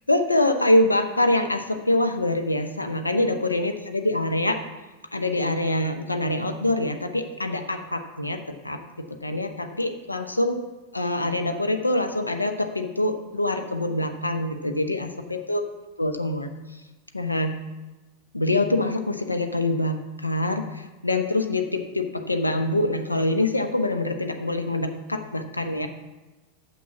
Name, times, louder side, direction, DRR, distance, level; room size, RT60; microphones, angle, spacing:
voice 1, 0.1-4.6 5.1-10.6 10.9-15.6 16.0-16.5 17.1-17.6 18.3-25.9, left 1 dB, 85° left, 7 dB, 0.7 m, -25 dB
6.9 x 6.2 x 7.1 m, 1.1 s
figure-of-eight pair, 90°, 0 cm